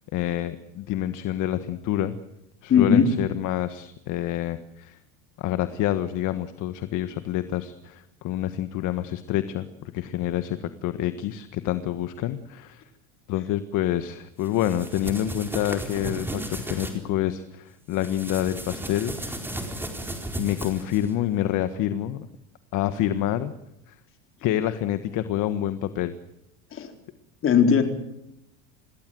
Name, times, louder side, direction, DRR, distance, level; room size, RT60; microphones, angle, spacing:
voice 1, 0.1-2.2 2.6-5.0 5.4-12.8 13.3-19.4 20.4-22.3 22.7-23.5 23.9-24.0 24.4-26.1, left 12 dB, 50° left, 11 dB, 1.5 m, -27 dB
voice 2, 2.7-3.1 26.7-26.9 27.4-27.8, left 7 dB, 30° left, 5 dB, 4.2 m, -18 dB
sound 1, 14.4-17.0 17.9-21.1, right 1 dB, 5° right, 4.3 m, -34 dB
27.0 x 20.5 x 7.9 m, 0.84 s
cardioid pair, 140°, 39 cm